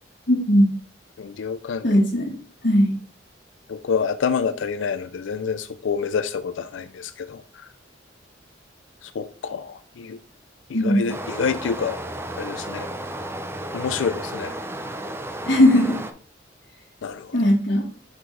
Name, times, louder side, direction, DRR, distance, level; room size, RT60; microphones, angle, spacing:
voice 1, 0.3-0.7 1.8-2.3 2.6-3.0 10.7-11.0 15.4-16.0 17.3-17.8, left 1 dB, 60° left, -5 dB, 1.6 m, -18 dB
voice 2, 1.2-1.9 3.7-7.4 9.0-10.2 10.7-12.0 12.4-12.9 13.7-14.6 17.0-17.3, left 6 dB, 85° left, 11 dB, 0.4 m, -27 dB
Stream, 11.1-16.1, right 1 dB, 15° right, 0.5 m, -33 dB
6.1 x 5.2 x 3.2 m, 0.40 s
head